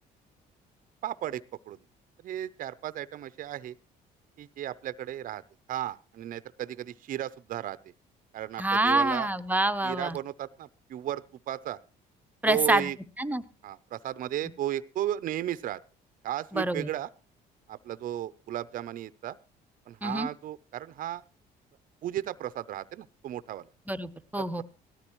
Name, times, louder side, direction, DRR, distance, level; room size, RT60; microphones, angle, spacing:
voice 1, 1.0-1.8 2.2-3.8 4.4-5.4 5.7-7.8 8.3-9.3 9.8-11.8 12.4-13.0 13.6-15.8 16.2-17.1 17.7-19.4 19.9-21.2 22.0-23.7 24.4-24.6, right 12 dB, 55° right, 16 dB, 0.6 m, -34 dB
voice 2, 8.6-10.2 12.4-12.9 13.2-13.4 16.5-16.9 20.0-20.3 23.9-24.6, right 1 dB, 10° right, 10 dB, 0.7 m, -26 dB
17.5 x 13.0 x 3.0 m, 0.33 s
cardioid pair, 110°, 17 cm